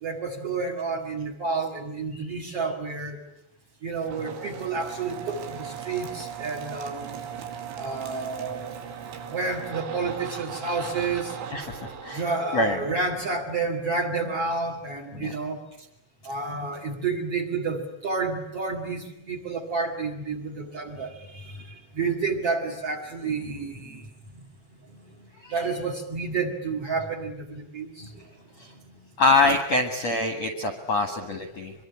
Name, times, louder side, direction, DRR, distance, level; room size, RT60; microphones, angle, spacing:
voice 1, 0.0-3.2 3.8-7.2 7.8-8.8 9.3-11.4 12.1-15.6 16.2-24.1 25.5-28.2 28.7-28.8, right 4 dB, 40° right, 7 dB, 2.4 m, -30 dB
sound 1, 4.0-13.6, right 7 dB, 85° right, 5.0 m, -38 dB
voice 2, 11.5-12.2 12.5-12.8 15.1-15.4 28.6-28.7 29.2-31.7, left 2 dB, 55° left, 6 dB, 1.9 m, -24 dB
24.5 x 23.5 x 9.9 m, 0.82 s
omnidirectional pair, 5.5 m